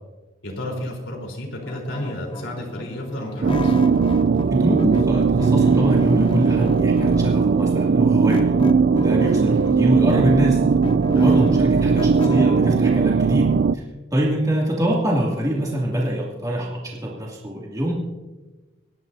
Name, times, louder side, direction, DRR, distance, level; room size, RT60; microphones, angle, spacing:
voice 1, 0.4-3.8 9.0-9.2 11.2-11.3, left 1 dB, 80° left, -1 dB, 3.9 m, -31 dB
sound 1, 1.6-4.5 4.8-7.5 8.3-9.9 10.3-12.8, left 2 dB, 25° left, 0.5 m, -32 dB
sound 2, 3.4-13.7, right 5 dB, 50° right, 0.3 m, -18 dB
voice 2, 4.5-8.5 8.9-10.6 11.1-13.8 14.1-17.9, right 1 dB, 20° right, -4 dB, 2.5 m, -24 dB
26.5 x 11.0 x 2.7 m, 1.2 s
head